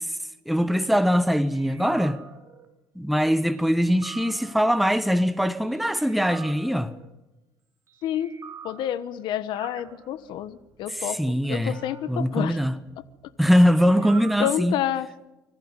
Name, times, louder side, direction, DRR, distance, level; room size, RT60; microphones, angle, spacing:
voice 1, 0.5-2.2 2.9-6.9 10.9-11.8 12.1-12.8 13.4-14.8, equal, ahead, 1.2 m, -22 dB
sound 1, 1.5-2.7 3.7-4.8 5.9-7.1 8.1-9.2 9.5-10.6 11.4-13.3 13.6-14.6, right 6 dB, 40° right, 4.2 m, -44 dB
voice 2, 8.0-8.3 8.6-12.6 14.4-15.1, left 11 dB, 75° left, 1.2 m, -29 dB
25.0 x 15.0 x 9.8 m
cardioid pair, 120°, 8 cm